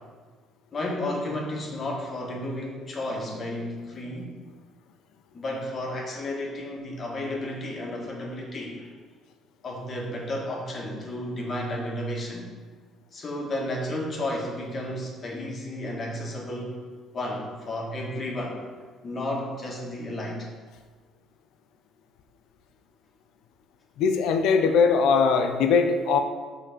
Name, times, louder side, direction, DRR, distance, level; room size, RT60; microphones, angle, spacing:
voice 1, 0.7-4.3 5.3-8.9 9.6-12.5 13.1-16.8 17.1-18.6 19.0-20.5, left 1 dB, 35° left, -1 dB, 1.6 m, -32 dB
voice 2, 24.0-26.2, left 5 dB, 80° left, 6 dB, 0.7 m, -21 dB
6.7 x 4.4 x 6.0 m, 1.4 s
cardioid pair, 135°, 0 cm